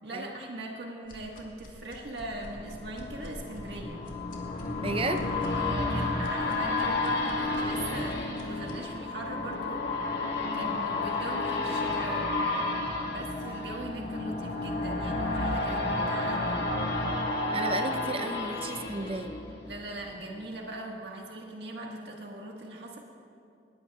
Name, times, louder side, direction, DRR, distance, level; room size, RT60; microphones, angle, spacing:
voice 1, 0.0-4.1 5.6-10.3 10.5-12.4 13.0-16.6 19.6-23.0, right 1 dB, 70° right, -1 dB, 1.6 m, -40 dB
sound 1, 1.0-8.9, equal, 50° left, 2.3 m, -49 dB
sound 2, 2.3-20.1 20.5-20.6, left 2 dB, 65° left, 1.7 m, -31 dB
voice 2, 4.8-5.3 17.5-19.3, right 2 dB, 30° right, 7 dB, 0.6 m, -33 dB
20.5 x 18.5 x 2.4 m, 2.5 s
head